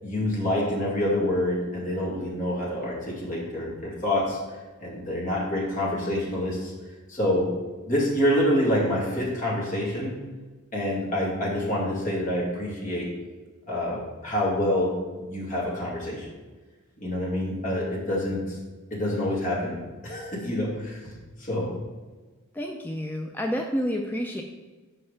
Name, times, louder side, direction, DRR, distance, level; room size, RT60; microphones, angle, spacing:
voice 1, 0.0-4.4 4.8-6.7 7.1-7.5 7.8-10.1 10.7-13.1 13.7-16.3 17.0-18.6 18.9-21.1 21.4-21.7, left 1 dB, 35° left, -5 dB, 2.3 m, -27 dB
voice 2, 22.5-24.4, equal, 10° left, 1 dB, 0.4 m, -29 dB
5.6 x 5.5 x 6.6 m, 1.3 s
head